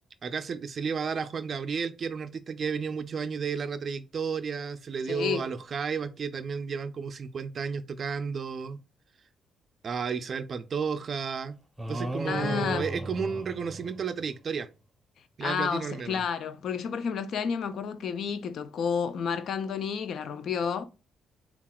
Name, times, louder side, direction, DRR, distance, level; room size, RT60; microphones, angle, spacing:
voice 1, 0.2-8.8 9.8-11.6 11.9-14.7 15.4-16.2, right 6 dB, 50° right, 0.3 m, -32 dB
voice 2, 5.1-5.5 12.3-12.9 15.4-20.8, left 7 dB, 65° left, 0.4 m, -30 dB
sound 1, 11.8-14.3, right 1 dB, 5° right, 0.8 m, -36 dB
5.4 x 2.3 x 2.3 m
cardioid pair, 90°, 0 cm